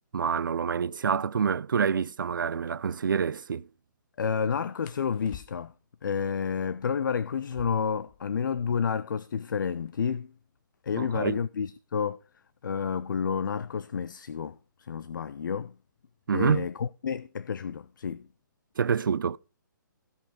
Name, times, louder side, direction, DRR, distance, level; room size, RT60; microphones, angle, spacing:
voice 1, 0.1-3.7 11.0-11.4 16.3-16.7 18.8-19.4, right 6 dB, 75° right, 0.5 m, -27 dB
sound 1, 2.1-2.3 4.8-5.9 7.4-9.0 9.3-9.4 9.6-10.2 10.8-13.4 14.4-14.7 15.1-15.6 15.9-16.6, left 11 dB, 25° left, 0.6 m, -52 dB
voice 2, 4.2-5.7 6.0-10.3 10.8-12.2 12.6-15.7 16.3-18.3, left 6 dB, 70° left, 0.5 m, -30 dB
15.0 x 5.5 x 5.0 m
figure-of-eight pair, 135°, 11 cm